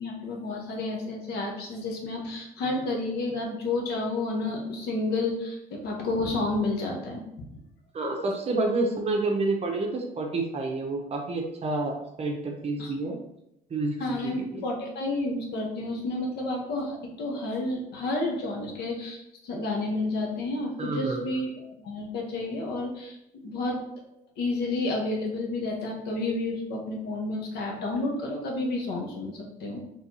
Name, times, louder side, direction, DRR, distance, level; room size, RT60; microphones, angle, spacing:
voice 1, 0.0-7.5 12.8-12.9 14.0-23.8 24.4-29.8, left 2 dB, 75° left, 0 dB, 1.1 m, -30 dB
voice 2, 7.9-13.2 13.7-14.6 20.8-21.2, right 2 dB, 35° right, 2 dB, 0.8 m, -29 dB
4.4 x 3.4 x 2.8 m, 0.85 s
cardioid pair, 110°, 17 cm